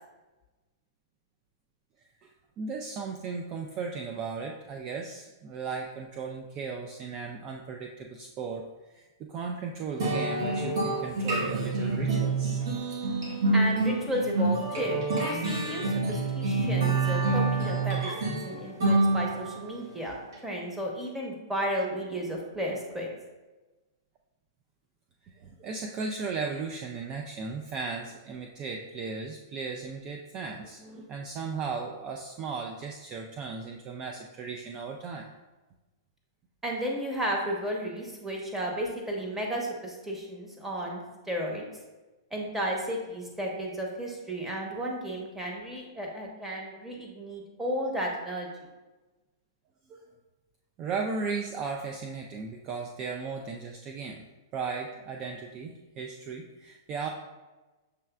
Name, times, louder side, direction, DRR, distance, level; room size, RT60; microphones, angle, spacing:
voice 1, 2.6-12.6 25.2-35.3 49.9-50.1 50.8-54.2 54.5-57.1, right 4 dB, 35° right, 2 dB, 0.4 m, -36 dB
sound 1, 10.0-19.6, right 3 dB, 70° right, 1.4 m, -27 dB
voice 2, 13.5-23.1 36.6-41.0 41.3-41.6 42.3-48.5, equal, 10° right, -1 dB, 1.0 m, -33 dB
6.6 x 3.1 x 2.3 m, 1.2 s
hypercardioid pair, 120°, 2 cm